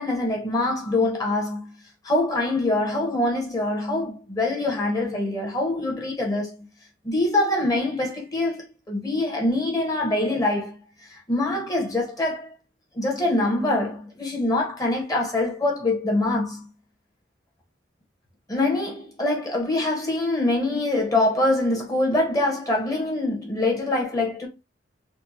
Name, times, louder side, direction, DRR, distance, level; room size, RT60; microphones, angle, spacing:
voice 1, 0.0-1.7 2.0-6.7 7.0-10.8 11.1-12.5 12.9-16.7 18.5-24.5, left 2 dB, 20° left, 1.6 m, -24 dB
4.4 x 2.5 x 2.9 m
head